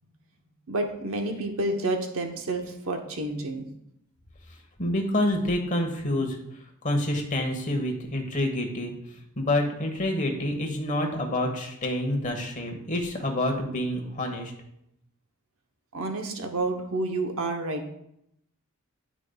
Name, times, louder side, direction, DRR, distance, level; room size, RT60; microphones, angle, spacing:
voice 1, 0.7-3.7 15.9-17.9, right 2 dB, 70° right, 4 dB, 0.9 m, -29 dB
voice 2, 4.8-14.5, left 1 dB, 35° left, 3 dB, 1.1 m, -28 dB
11.0 x 5.0 x 2.3 m, 0.78 s
head